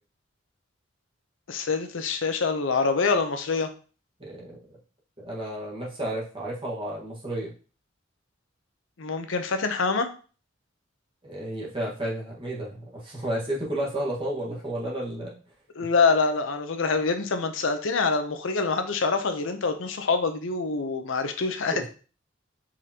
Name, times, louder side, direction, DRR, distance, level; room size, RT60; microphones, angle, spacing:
voice 1, 1.5-3.7 9.0-10.1 15.7-21.9, left 4 dB, 70° left, 7 dB, 0.7 m, -25 dB
voice 2, 4.2-4.6 5.2-7.5 11.2-15.4 21.7-21.9, right 1 dB, 25° right, -4 dB, 1.5 m, -32 dB
4.9 x 3.8 x 2.8 m, 0.37 s
head